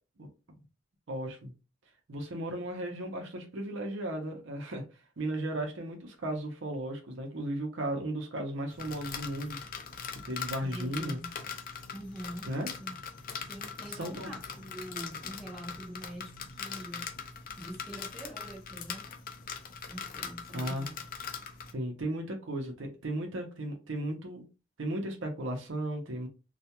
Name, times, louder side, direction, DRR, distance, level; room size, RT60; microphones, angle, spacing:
voice 1, 1.1-1.5 2.1-4.8 5.2-9.6 10.3-11.2 12.4-12.7 13.9-14.3 20.5-20.8 21.7-24.5 24.8-26.3, right 1 dB, 80° right, 0.7 m, -35 dB
Rain Gutter Downspout, 8.7-21.7, left 6 dB, 50° left, 0.4 m, -41 dB
voice 2, 10.6-11.3 11.9-12.5 12.8-13.0 13.4-17.2 17.6-19.1 19.9-20.9, equal, ahead, 0.7 m, -44 dB
2.3 x 2.2 x 2.8 m
head